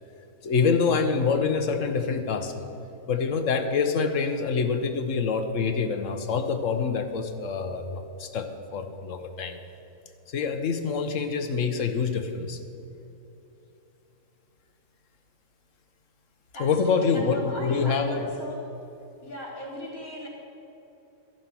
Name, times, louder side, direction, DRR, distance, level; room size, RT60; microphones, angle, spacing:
voice 1, 0.4-2.5 3.1-9.6 10.3-12.6 16.6-18.3, left 5 dB, 65° left, 7 dB, 1.3 m, -26 dB
voice 2, 16.5-18.6 19.2-20.3, left 1 dB, 80° left, -2 dB, 3.6 m, -38 dB
13.0 x 10.5 x 6.1 m, 2.9 s
omnidirectional pair, 1.5 m